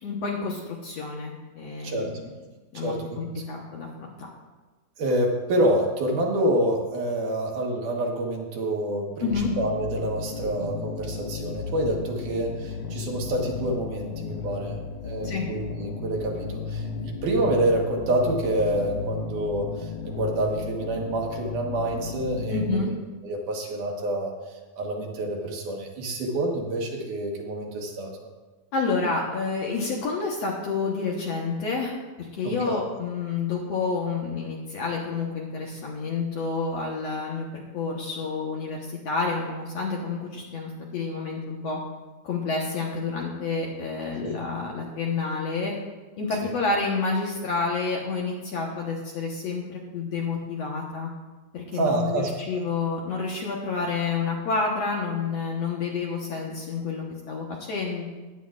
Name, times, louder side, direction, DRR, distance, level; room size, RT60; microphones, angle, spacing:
voice 1, 0.0-2.1 2.7-4.3 9.2-9.5 15.2-15.4 22.5-22.9 28.7-31.9 32.3-41.8 42.2-45.7 46.2-51.1 51.5-58.0, left 4 dB, 60° left, -2 dB, 1.9 m, -29 dB
voice 2, 2.7-3.4 5.0-9.3 9.6-22.8 23.2-24.3 24.8-28.3 32.4-32.8 44.2-44.3 51.7-52.3, right 1 dB, 65° right, 0 dB, 2.7 m, -27 dB
sound 1, 9.3-22.9, left 5 dB, 90° left, 1.4 m, -34 dB
15.5 x 11.0 x 2.4 m, 1.2 s
omnidirectional pair, 4.0 m